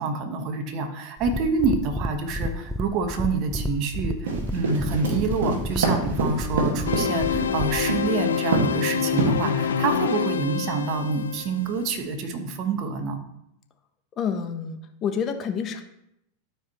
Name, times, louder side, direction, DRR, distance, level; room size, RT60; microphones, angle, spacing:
voice 1, 0.0-13.2, right 4 dB, 45° right, 5 dB, 1.3 m, -27 dB
sound 1, 1.2-7.9, left 1 dB, ahead, 0.5 m, -32 dB
sound 2, 4.3-7.5 7.9-8.2 8.5-8.8 9.2-9.7, right 3 dB, 80° right, 1.9 m, -24 dB
sound 3, 6.9-12.1, left 7 dB, 85° left, 0.5 m, -27 dB
voice 2, 14.2-15.8, left 7 dB, 35° left, 7 dB, 1.0 m, -28 dB
12.5 x 4.8 x 3.1 m, 0.79 s
hypercardioid pair, 100°, 0 cm